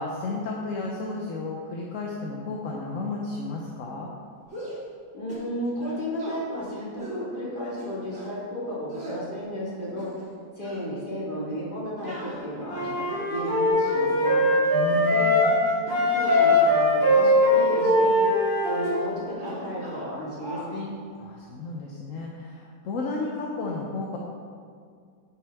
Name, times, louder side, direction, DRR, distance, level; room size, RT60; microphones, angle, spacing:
voice 1, 0.0-4.1 14.7-15.4 21.2-24.2, left 3 dB, 55° left, -2 dB, 1.0 m, -32 dB
sound 1, 4.4-4.9 5.3-5.5 5.8-6.4 7.0-7.2 7.8-8.3 8.9-9.2 9.8-10.4 10.6-10.9 12.0-13.1 13.6-14.1 14.8-15.0 15.4-15.6 16.1-17.4 17.7-17.9 18.8-19.1 19.4-20.1 20.4-20.7, right 1 dB, 45° right, 2.0 m, -41 dB
voice 2, 5.1-10.1 10.6-12.9 13.3-14.4 15.1-15.3 15.7-18.1 18.6-20.9, equal, 30° left, -7 dB, 2.3 m, -33 dB
Wind instrument woodwind instrument, 12.7-15.6 15.9-19.1, left 1 dB, 10° left, 1.6 m, -21 dB
9.9 x 6.0 x 3.5 m, 2.1 s
omnidirectional pair, 1.9 m